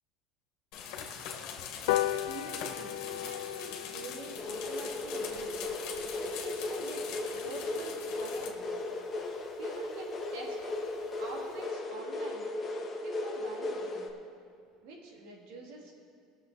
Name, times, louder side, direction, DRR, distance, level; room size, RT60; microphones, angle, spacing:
sound 1, 0.7-8.5, left 7 dB, 65° left, 1.8 m, -43 dB
sound 2, 1.9-8.6 9.0-9.1 9.5-9.6 9.8-9.9 10.2-10.3 10.6-10.9 11.3-11.4, left 14 dB, 85° left, 0.5 m, -38 dB
voice 1, 2.3-5.6 6.2-7.0 7.3-8.8 9.6-10.6 11.2-12.5 13.0-14.1 14.8-15.9, right 3 dB, 75° right, 0 dB, 2.6 m, -46 dB
sound 3, 4.4-14.1, left 2 dB, 20° left, 1.7 m, -36 dB
20.5 x 7.0 x 4.2 m, 2.4 s
cardioid pair, 135°, 0 cm